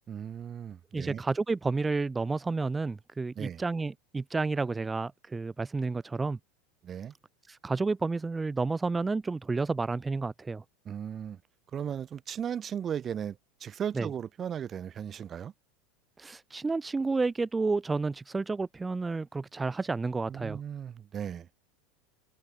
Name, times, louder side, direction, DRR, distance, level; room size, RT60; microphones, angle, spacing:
voice 1, 0.1-1.2 3.4-3.6 6.8-7.1 10.9-11.4 11.7-15.5 20.3-21.5, right 8 dB, 30° right, 2.3 m, -36 dB
voice 2, 0.9-6.4 7.5-10.6 14.0-14.1 16.2-20.6, right 3 dB, 15° right, 2.0 m, -30 dB
supercardioid pair, 125°, 0 cm